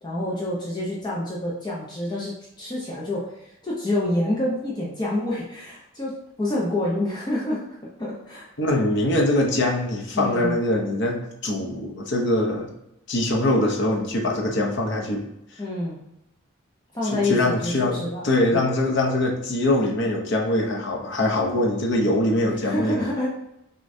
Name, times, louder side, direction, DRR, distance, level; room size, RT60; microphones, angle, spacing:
voice 1, 0.0-8.5 10.1-10.6 15.6-16.0 16.9-18.7 22.6-23.3, left 1 dB, 20° left, -5 dB, 0.6 m, -28 dB
voice 2, 8.6-12.7 13.1-15.2 17.1-23.0, left 1 dB, 55° left, 0 dB, 0.7 m, -23 dB
6.3 x 2.3 x 2.6 m, 0.85 s
head